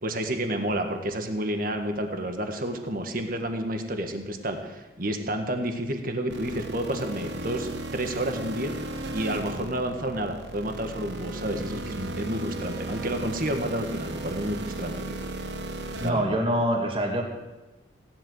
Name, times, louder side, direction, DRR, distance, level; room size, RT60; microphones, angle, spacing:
voice 1, 0.0-8.7 9.1-15.2 16.0-16.4, right 1 dB, 50° right, 5 dB, 1.7 m, -30 dB
sound 1, 6.3-16.1, right 2 dB, 65° right, 1.3 m, -35 dB
voice 2, 16.0-17.2, equal, 30° right, 2 dB, 2.2 m, -25 dB
16.5 x 11.0 x 6.5 m, 1.1 s
head